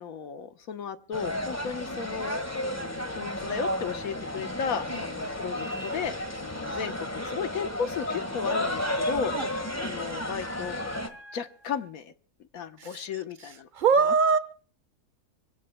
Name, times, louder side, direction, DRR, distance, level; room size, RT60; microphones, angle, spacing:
voice 1, 0.0-2.4 3.1-6.1 6.4-9.3 9.8-10.7 11.1-12.1 12.5-13.7 14.0-14.1, left 6 dB, 65° left, 9 dB, 1.3 m, -34 dB
sound 1, 1.1-11.1, left 1 dB, 10° left, 1.4 m, -32 dB
sound 2, 3.2-6.7 8.2-11.9, left 3 dB, 45° left, 2.7 m, -47 dB
voice 2, 13.7-14.4, right 5 dB, 35° right, 13 dB, 1.0 m, -23 dB
26.5 x 16.5 x 2.2 m, 0.42 s
omnidirectional pair, 1.7 m